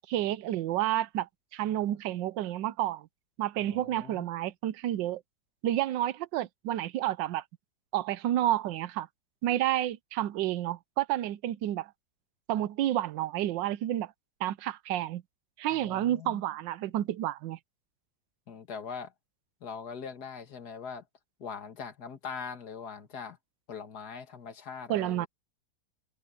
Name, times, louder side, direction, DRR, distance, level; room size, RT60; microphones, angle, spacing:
voice 1, 0.1-3.1 3.4-5.2 5.6-7.4 7.9-9.1 9.4-11.9 12.5-14.1 14.4-15.2 15.6-17.6 24.9-25.3, right 13 dB, 80° right, 1.3 m, -30 dB
voice 2, 3.6-4.3 15.7-16.4 18.5-19.1 19.6-21.0 21.4-23.4 23.7-25.3, left 6 dB, 60° left, 2.3 m, -41 dB
omnidirectional pair, 2.0 m